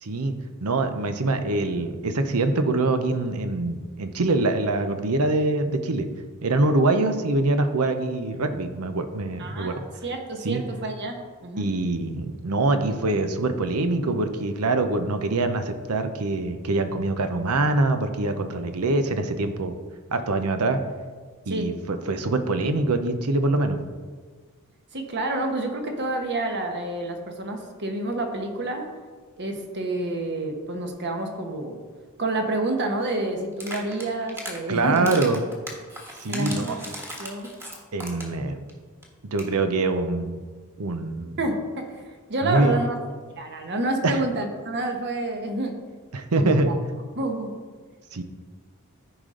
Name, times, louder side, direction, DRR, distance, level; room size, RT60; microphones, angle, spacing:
voice 1, 0.0-0.3 0.6-6.1 6.4-9.9 10.4-10.6 11.6-19.8 20.1-20.8 21.5-23.8 34.7-35.4 36.2-36.6 37.9-38.6 39.3-40.4 40.8-41.4 42.4-42.7 44.0-44.2 46.1-46.7 48.1-48.2, right 2 dB, 90° right, 8 dB, 0.8 m, -24 dB
voice 2, 9.4-11.7 21.5-21.8 24.9-28.9 29.4-31.8 32.2-35.1 36.3-36.7 37.2-37.5 41.4-43.0 43.3-45.8 46.4-46.8 47.1-47.6, right 2 dB, 50° right, 4 dB, 1.1 m, -29 dB
sound 1, 33.5-34.6 35.0-38.4 38.7-38.8 39.0-39.1 39.3-39.5, equal, 10° right, 1.4 m, -37 dB
13.5 x 5.0 x 3.8 m, 1.5 s
head